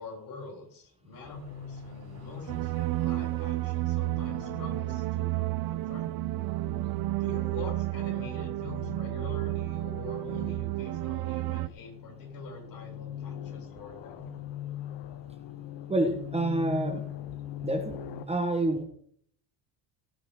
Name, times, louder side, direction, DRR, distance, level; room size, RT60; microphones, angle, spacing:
voice 1, 0.0-6.1 7.1-14.4, left 3 dB, 55° left, -1 dB, 7.1 m, -45 dB
sound 1, 1.1-7.0, right 4 dB, 40° right, 5.6 m, -55 dB
sound 2, 1.3-18.3, left 8 dB, 75° left, 1.3 m, -43 dB
sound 3, 2.5-11.7, right 18 dB, 55° right, 0.7 m, -31 dB
voice 2, 15.9-17.0 17.6-18.0 18.3-18.8, right 2 dB, 15° right, 5 dB, 1.3 m, -27 dB
17.5 x 10.0 x 3.8 m, 0.63 s
cardioid pair, 130°, 42 cm